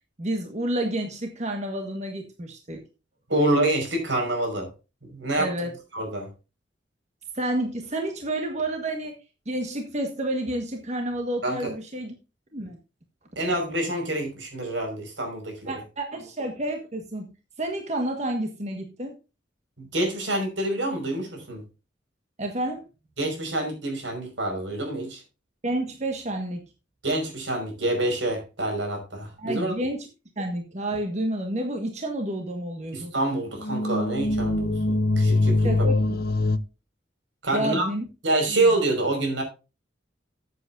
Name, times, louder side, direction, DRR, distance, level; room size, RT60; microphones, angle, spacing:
voice 1, 0.2-2.8 5.4-5.7 7.3-9.2 9.4-12.1 12.5-12.8 15.7-17.3 17.6-19.2 22.4-22.8 25.6-26.6 29.4-30.1 30.4-33.1 35.6-36.2 37.5-38.1 38.5-38.7, right 1 dB, 40° right, 3 dB, 1.5 m, -30 dB
voice 2, 3.3-4.7 5.0-5.5 5.9-6.3 11.4-11.7 13.4-15.7 19.8-21.6 23.2-25.2 27.0-29.7 32.9-35.9 37.4-37.9 38.2-39.4, right 2 dB, 85° right, 3 dB, 5.3 m, -27 dB
sound 1, 33.5-36.6, left 2 dB, 55° left, 0.7 m, -23 dB
14.5 x 8.0 x 2.6 m, 0.30 s
head